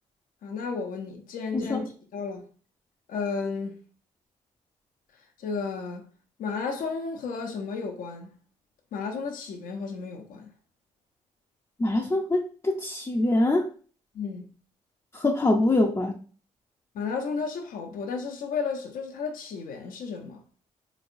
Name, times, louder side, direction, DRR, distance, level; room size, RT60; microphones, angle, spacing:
voice 1, 0.4-2.5 3.1-3.8 5.4-6.0 6.4-8.3 8.9-10.5 14.1-14.5 16.9-20.4, left 5 dB, 60° left, 0.8 m, -33 dB
voice 2, 11.8-13.7 15.2-16.2, left 2 dB, 20° left, 0.6 m, -24 dB
4.1 x 3.2 x 2.6 m
hypercardioid pair, 45°, 16 cm